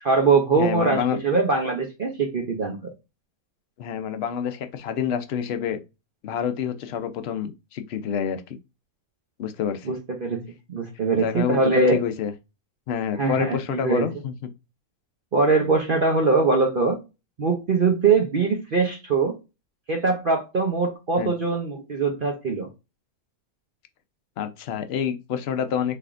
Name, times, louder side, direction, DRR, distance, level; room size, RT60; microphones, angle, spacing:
voice 1, 0.0-2.9 9.9-10.4 10.7-12.0 13.2-14.1 15.3-17.0 17.4-19.4 19.9-22.7, right 4 dB, 50° right, 0.7 m, -22 dB
voice 2, 0.6-1.2 3.8-5.8 6.2-8.6 9.4-9.9 11.1-11.6 11.9-12.3 12.9-14.3 21.2-21.3 24.4-26.0, left 8 dB, 55° left, 0.7 m, -27 dB
5.6 x 3.4 x 2.5 m
omnidirectional pair, 1.6 m